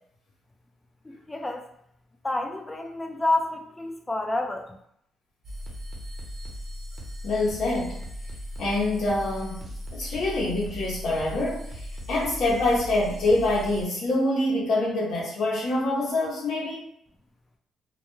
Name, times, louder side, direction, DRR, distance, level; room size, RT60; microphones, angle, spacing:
voice 1, 1.0-1.7 2.2-4.8, left 2 dB, 15° left, 4 dB, 0.4 m, -29 dB
sound 1, 5.4-13.9, equal, 35° right, 0.8 m, -37 dB
voice 2, 7.2-8.0 8.6-16.9, left 2 dB, 70° left, -6 dB, 0.7 m, -26 dB
2.2 x 2.1 x 3.0 m, 0.73 s
cardioid pair, 90°, 0 cm